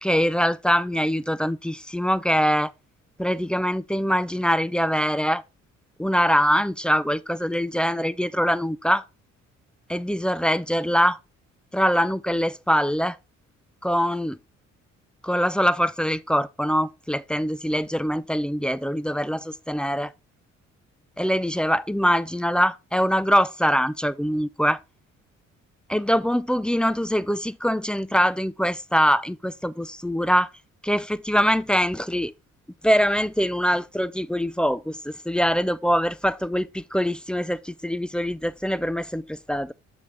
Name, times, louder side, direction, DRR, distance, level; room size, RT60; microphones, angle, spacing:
voice 1, 0.0-2.7 3.2-5.4 6.0-9.0 9.9-11.2 11.7-13.2 13.8-14.4 15.2-20.1 21.2-24.8 25.9-30.5 30.8-32.3 32.8-39.7, equal, 5° left, 0.3 m, -23 dB
7.0 x 6.1 x 3.3 m
cardioid pair, 90°, 30 cm